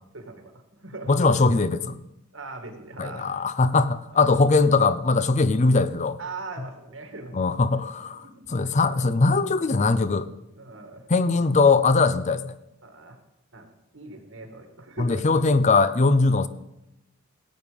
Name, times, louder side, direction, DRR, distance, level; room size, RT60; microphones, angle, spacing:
voice 1, 0.1-0.5 0.8-1.1 2.3-3.4 4.1-4.2 6.2-7.3 8.2-8.3 10.5-11.1 12.8-13.2 13.5-15.3, right 3 dB, 75° right, 5 dB, 2.2 m, -40 dB
voice 2, 1.1-2.0 3.0-6.2 7.3-10.3 11.1-12.5 15.0-16.5, left 3 dB, 35° left, 14 dB, 0.6 m, -21 dB
17.0 x 8.5 x 5.2 m, 0.90 s
head